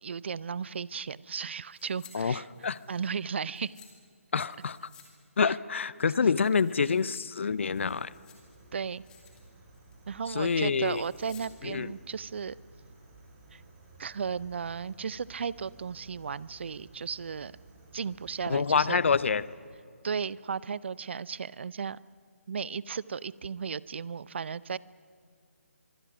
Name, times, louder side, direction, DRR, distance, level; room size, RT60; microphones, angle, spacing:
voice 1, 0.0-2.5 2.9-3.8 5.5-5.6 8.7-9.0 10.1-12.6 13.5-13.6 14.0-17.5 17.9-19.0 20.0-22.0 22.5-24.8, right 6 dB, 50° right, 21 dB, 0.6 m, -35 dB
sound 1, 1.7-2.1 2.4-3.9 4.5-5.1 5.4-5.5 5.9-7.2 7.6-8.6 8.9-9.4 9.7-10.0 10.7-11.5 11.8-11.9, left 8 dB, 10° left, 2.6 m, -56 dB
voice 2, 2.1-2.8 4.3-4.8 5.4-8.1 10.3-11.0 11.6-11.9 18.5-19.5, left 5 dB, 55° left, 19 dB, 0.7 m, -27 dB
sound 2, 7.5-19.5, right 2 dB, 25° right, 6.5 m, -56 dB
24.5 x 24.0 x 6.1 m, 2.2 s
figure-of-eight pair, 145°, 8 cm